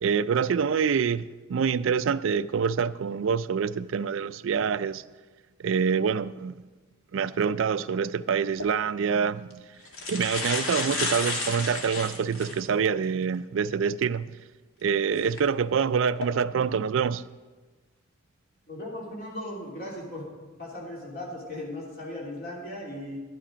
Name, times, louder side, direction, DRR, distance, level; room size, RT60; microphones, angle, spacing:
voice 1, 0.0-5.0 5.6-6.6 7.1-9.6 10.1-14.4 14.8-17.2, right 6 dB, 65° right, 0.3 m, -26 dB
sound 1, 8.5-8.7 9.5-9.6 9.8-12.7 13.2-13.3 15.2-15.4 16.0-16.3, left 3 dB, 85° left, 1.8 m, -31 dB
voice 2, 18.7-20.3 20.6-23.2, left 1 dB, 45° left, 3.0 m, -37 dB
11.5 x 10.0 x 5.1 m
head